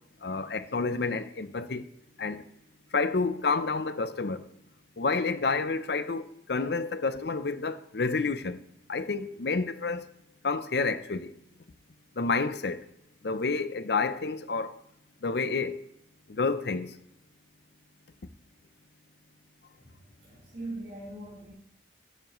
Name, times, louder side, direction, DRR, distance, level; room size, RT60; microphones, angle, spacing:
voice 1, 0.2-1.9 2.2-2.4 2.9-4.5 5.0-8.6 8.9-10.1 10.4-11.3 12.2-12.8 13.2-14.7 15.2-15.8 16.3-17.0, left 4 dB, 60° left, 0.6 m, -29 dB
voice 2, 19.8-21.5, right 2 dB, 40° right, 4.0 m, -41 dB
13.0 x 9.6 x 3.1 m
head